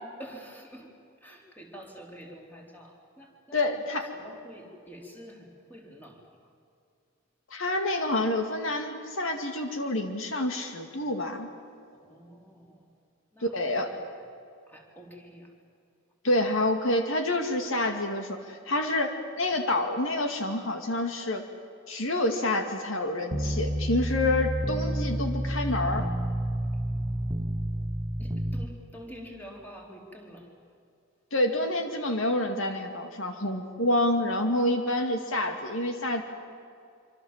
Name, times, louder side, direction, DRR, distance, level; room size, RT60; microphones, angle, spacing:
voice 1, 0.2-0.9 1.2-3.6 4.1-6.2 12.0-12.8 13.3-13.5 14.7-15.5 26.8-27.8 28.2-30.5, equal, 10° left, 0 dB, 4.0 m, -47 dB
voice 2, 3.5-4.1 7.5-11.5 13.4-13.9 16.2-21.4 21.9-26.1 31.3-36.2, left 1 dB, 70° left, 4 dB, 2.3 m, -28 dB
sound 1, 23.3-28.6, right 1 dB, 15° right, 1.0 m, -29 dB
26.0 x 26.0 x 7.4 m, 2.4 s
head